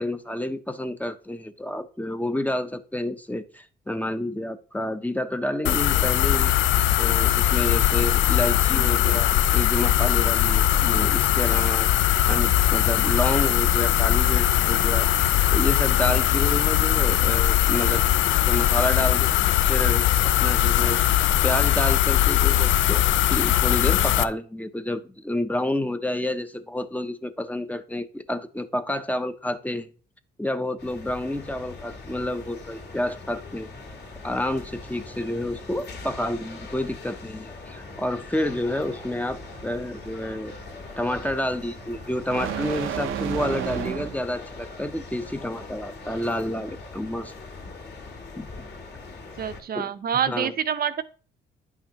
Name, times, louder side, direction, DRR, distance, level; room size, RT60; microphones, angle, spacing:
voice 1, 0.0-6.5 7.0-19.3 19.7-20.1 20.4-23.0 23.3-29.9 30.4-33.7 34.2-40.5 41.0-47.3 48.4-48.5 49.7-49.9 50.3-50.5, left 1 dB, 10° left, 9 dB, 0.7 m, -29 dB
sound 1, 5.7-24.2, left 12 dB, 70° left, 0.4 m, -20 dB
sound 2, 30.8-49.6, left 3 dB, 55° left, 2.1 m, -41 dB
sound 3, 37.9-44.3, right 9 dB, 90° right, 0.7 m, -34 dB
voice 2, 49.4-51.0, right 8 dB, 50° right, 13 dB, 0.6 m, -27 dB
10.0 x 5.7 x 2.9 m, 0.40 s
cardioid pair, 90°, 20 cm